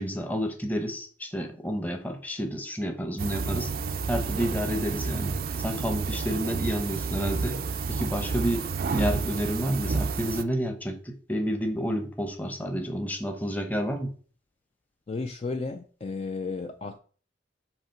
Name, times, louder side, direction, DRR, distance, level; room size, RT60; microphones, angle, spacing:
voice 1, 0.0-3.7 4.1-7.6 7.9-8.7 8.9-14.1, equal, 10° left, 0.8 m, -30 dB
sound 1, 3.2-10.4, right 4 dB, 55° right, 0.4 m, -30 dB
voice 2, 15.1-17.0, left 3 dB, 35° left, 0.4 m, -33 dB
7.4 x 2.8 x 4.5 m
head